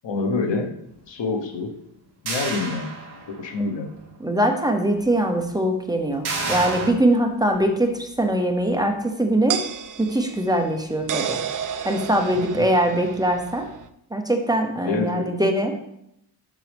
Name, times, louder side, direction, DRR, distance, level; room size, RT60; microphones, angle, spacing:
voice 1, 0.0-0.7 1.1-1.7 2.2-3.0 3.3-3.9 12.5-12.7 14.8-15.4, left 4 dB, 90° left, 5 dB, 1.1 m, -26 dB
sound 1, 2.3-3.5 4.0-4.1 6.2-6.9, right 3 dB, 65° right, 2.0 m, -29 dB
voice 2, 4.2-9.6 10.0-11.4 11.8-13.7 14.1-15.7, right 1 dB, 10° right, 4 dB, 0.7 m, -22 dB
sound 2, 5.1-5.2 7.6-7.7 9.5-13.9, right 8 dB, 50° right, 0.4 m, -31 dB
7.5 x 6.2 x 3.4 m, 0.78 s
wide cardioid pair, 140°, 43 cm